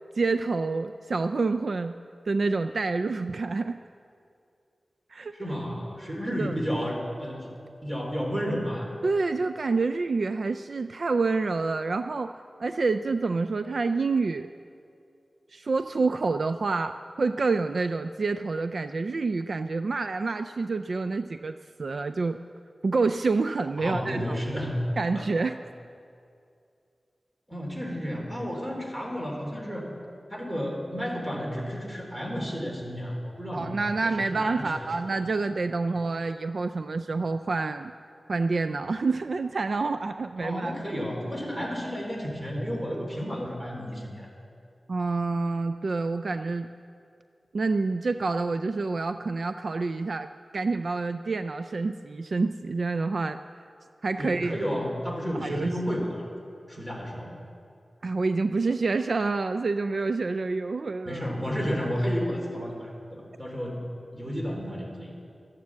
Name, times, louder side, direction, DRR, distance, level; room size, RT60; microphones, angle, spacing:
voice 1, 0.2-2.0 2.3-3.8 5.1-5.3 6.3-6.5 9.0-12.3 12.6-14.5 15.5-22.4 22.8-24.4 25.0-25.6 33.5-37.9 38.3-40.7 44.9-46.7 47.5-53.4 54.0-54.6 55.4-55.7 58.0-61.2, right 3 dB, 65° right, 9 dB, 0.3 m, -28 dB
voice 2, 5.3-7.5 7.8-9.1 23.8-24.8 25.1-25.3 27.5-29.9 30.3-33.7 34.0-34.8 35.1-35.2 40.4-44.3 54.2-56.3 56.7-57.4 61.0-63.8 64.1-65.1, equal, 20° right, -1 dB, 3.3 m, -32 dB
13.5 x 9.5 x 7.5 m, 2.5 s
wide cardioid pair, 90°, 0 cm